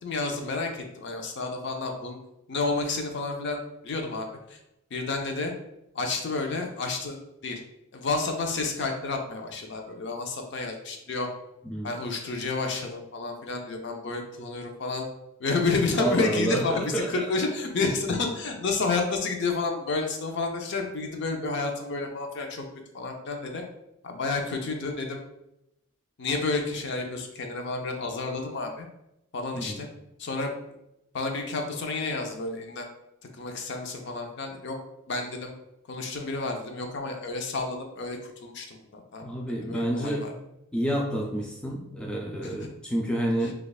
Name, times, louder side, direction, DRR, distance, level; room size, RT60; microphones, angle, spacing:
voice 1, 0.0-2.2 2.5-4.6 4.9-5.5 5.9-7.6 7.9-11.3 11.8-15.1 15.4-22.6 22.9-23.6 24.0-25.2 26.2-28.9 29.3-29.9 30.2-30.5 31.1-32.9 33.3-34.8 35.1-35.5 35.9-39.3 39.6-40.3 42.4-42.7 43.4-43.5, left 3 dB, 55° left, 3 dB, 0.5 m, -30 dB
voice 2, 16.0-17.3 29.5-29.8 39.2-40.3 40.7-43.5, right 1 dB, 5° left, -2 dB, 0.4 m, -29 dB
2.9 x 2.3 x 4.0 m, 0.85 s
head